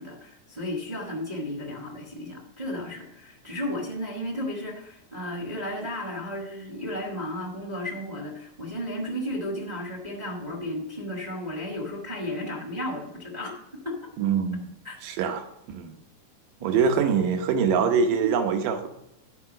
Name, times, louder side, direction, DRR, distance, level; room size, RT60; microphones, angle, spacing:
voice 1, 0.0-14.0 14.8-15.0 16.6-16.8 18.2-18.3, left 1 dB, 30° right, 0.7 m, -34 dB
voice 2, 14.2-14.7 15.0-16.0 16.6-18.9, right 6 dB, 85° right, 2.6 m, -24 dB
10.5 x 4.8 x 6.2 m
omnidirectional pair, 3.8 m